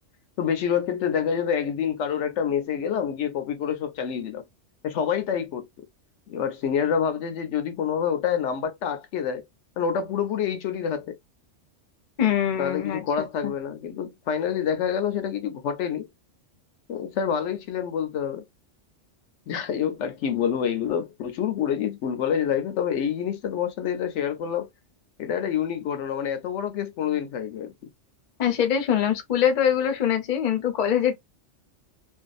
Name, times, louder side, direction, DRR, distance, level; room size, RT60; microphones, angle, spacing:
voice 1, 0.4-4.4 4.8-5.6 6.3-9.4 9.8-11.1 12.6-16.1 16.9-18.4 19.5-24.7 25.2-27.7, left 8 dB, 75° left, 0.9 m, -27 dB
voice 2, 12.2-13.5 28.4-31.1, left 9 dB, 50° left, 0.6 m, -23 dB
2.6 x 2.3 x 2.3 m
omnidirectional pair, 1.3 m